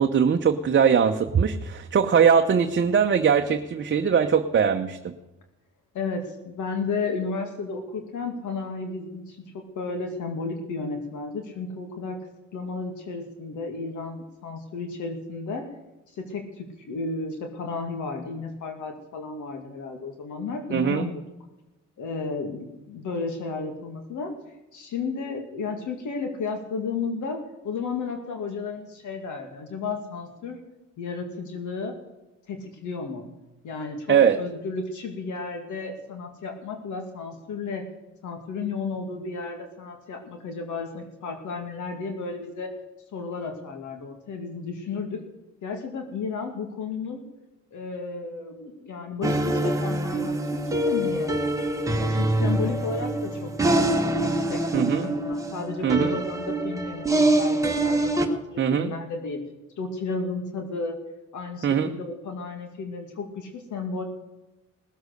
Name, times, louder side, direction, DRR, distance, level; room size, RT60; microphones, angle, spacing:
voice 1, 0.0-5.1 20.7-21.1 34.1-34.4 54.7-55.1 55.8-56.2 58.6-59.0 61.6-61.9, right 7 dB, 40° right, 4 dB, 0.9 m, -21 dB
voice 2, 5.9-12.2 12.5-15.7 16.1-21.2 22.0-24.3 24.7-30.6 31.0-32.0 32.5-33.2 33.6-37.8 38.2-42.7 43.1-45.2 45.6-47.2 47.7-51.3 51.9-53.5 54.2-59.4 59.8-61.0 61.3-64.0, left 4 dB, 75° left, 4 dB, 2.3 m, -33 dB
sound 1, 49.2-58.3, right 1 dB, 10° right, 1.6 m, -25 dB
18.5 x 8.0 x 6.6 m, 1.0 s
cardioid pair, 90°, 30 cm